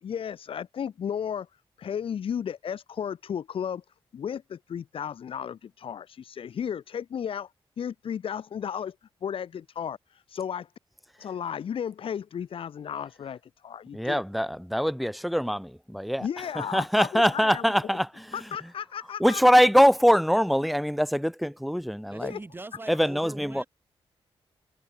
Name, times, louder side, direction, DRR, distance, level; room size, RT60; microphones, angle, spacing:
voice 1, 0.0-1.5 1.8-3.8 4.1-7.5 7.8-8.9 9.2-10.7 11.2-14.2 16.2-17.6 18.3-19.4 22.2-22.4, left 8 dB, 65° left, 1.2 m, -34 dB
voice 2, 13.9-16.3 16.6-18.3 19.2-22.3 22.9-23.6, equal, ahead, 0.9 m, -23 dB
voice 3, 22.1-23.7, right 2 dB, 20° right, 7.1 m, -42 dB
wide cardioid pair, 115°, 10 cm